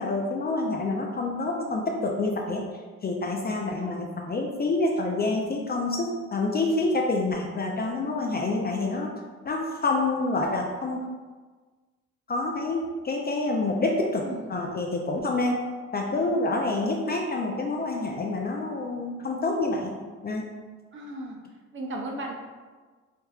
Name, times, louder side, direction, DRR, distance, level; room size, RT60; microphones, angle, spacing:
voice 1, 0.0-2.6 3.0-9.1 9.4-11.0 12.3-14.2 14.5-15.6 15.9-19.9 20.2-20.5, left 2 dB, 35° left, 0 dB, 0.4 m, -27 dB
voice 2, 14.1-14.5 16.1-16.3 20.9-21.4 21.7-22.3, right 1 dB, 40° right, 1 dB, 0.6 m, -36 dB
3.4 x 2.9 x 2.3 m, 1.4 s
cardioid pair, 90°, 30 cm